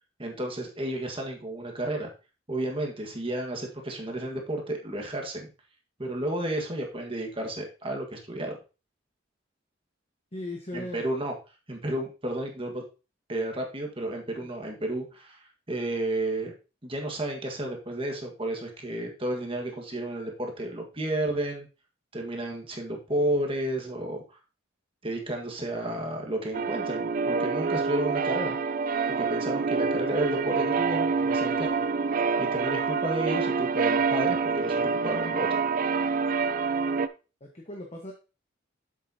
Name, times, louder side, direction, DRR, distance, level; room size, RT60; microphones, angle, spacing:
voice 1, 0.2-2.1 2.5-5.5 6.0-8.6 10.7-11.3 11.7-12.8 13.3-16.5 16.8-21.7 22.1-24.4 25.0-28.6 29.2-31.8 32.4-35.5, right 1 dB, 30° right, 2 dB, 1.6 m, -32 dB
voice 2, 10.3-11.1 14.4-14.5 37.4-38.1, left 1 dB, 35° left, 1 dB, 1.1 m, -38 dB
sound 1, 26.5-37.1, right 5 dB, 45° right, 0.4 m, -27 dB
7.6 x 7.5 x 2.8 m, 0.31 s
head